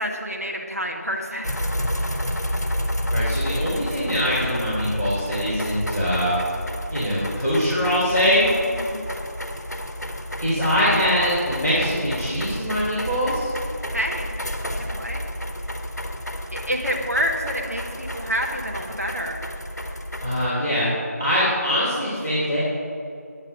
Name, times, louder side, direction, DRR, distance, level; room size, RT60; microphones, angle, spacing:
voice 1, 0.0-1.6 8.6-9.0 13.9-14.3 14.7-15.2 16.7-19.4, equal, 60° right, 0 dB, 1.9 m, -28 dB
sound 1, 1.4-20.5, equal, 75° left, 1.2 m, -30 dB
voice 2, 3.1-6.3 6.9-8.4 10.4-13.5 20.2-20.9 21.2-22.6, equal, 10° right, -18 dB, 1.7 m, -23 dB
9.5 x 8.7 x 6.3 m, 2.7 s
figure-of-eight pair, 180°, 9 cm